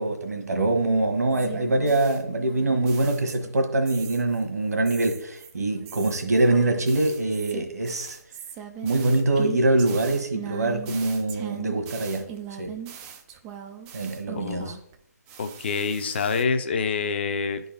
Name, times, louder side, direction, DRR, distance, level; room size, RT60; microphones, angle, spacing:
voice 1, 0.0-8.2 8.8-12.3 12.6-12.7 13.9-14.8, right 2 dB, 65° right, 1.4 m, -24 dB
sound 1, 1.3-3.6 3.9-4.4 4.9-15.0 15.3-16.4, right 9 dB, 10° right, 0.3 m, -40 dB
voice 2, 14.4-14.7 15.4-17.6, left 5 dB, 40° left, 0.6 m, -26 dB
9.9 x 4.0 x 3.9 m
figure-of-eight pair, 150°, 9 cm